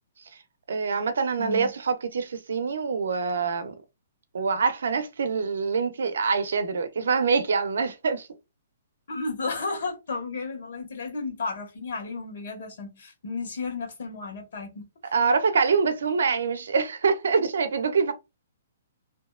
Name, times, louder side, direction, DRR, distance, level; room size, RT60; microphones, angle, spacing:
voice 1, 0.7-3.8 4.3-8.3 15.1-18.1, right 5 dB, 80° right, 0.5 m, -25 dB
voice 2, 1.4-1.7 9.1-15.1, left 3 dB, 65° left, 1.1 m, -33 dB
2.7 x 2.1 x 2.3 m
hypercardioid pair, 160°, 0 cm